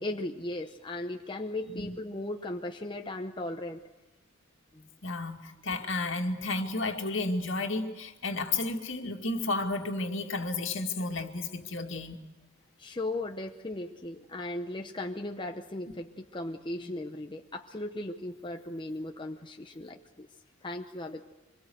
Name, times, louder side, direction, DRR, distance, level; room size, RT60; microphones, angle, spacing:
voice 1, 0.0-3.8 4.7-4.9 12.8-20.3 20.6-21.2, left 1 dB, 20° left, 4 dB, 0.8 m, -37 dB
voice 2, 5.0-12.2, left 2 dB, 60° left, 4 dB, 2.3 m, -32 dB
25.5 x 22.0 x 7.9 m, 1.1 s
head